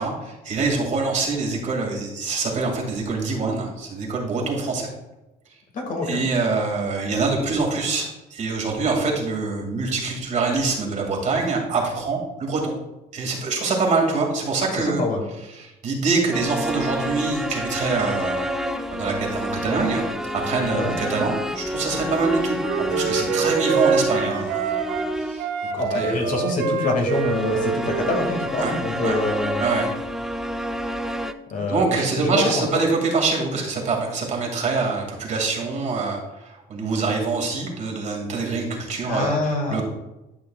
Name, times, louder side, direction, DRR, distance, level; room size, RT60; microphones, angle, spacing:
voice 1, 0.0-4.9 6.0-12.7 13.1-15.0 15.5-18.5 18.9-20.0 20.3-24.7 25.2-25.5 25.7-26.3 28.6-28.7 29.0-29.2 29.6-29.9 31.7-39.3 39.7-39.9, right 4 dB, 45° right, -1 dB, 2.3 m, -25 dB
voice 2, 5.7-6.2 14.7-15.2 20.7-20.9 25.8-29.6 31.5-32.7 39.1-39.9, left 2 dB, 50° left, 2 dB, 2.0 m, -25 dB
sound 1, 16.3-25.6 27.1-31.3, equal, 5° right, 0.4 m, -28 dB
Wind instrument woodwind instrument, 22.2-25.1 25.4-28.7, right 6 dB, 85° right, 0.7 m, -26 dB
11.5 x 6.0 x 2.4 m, 0.97 s
cardioid pair, 110°, 17 cm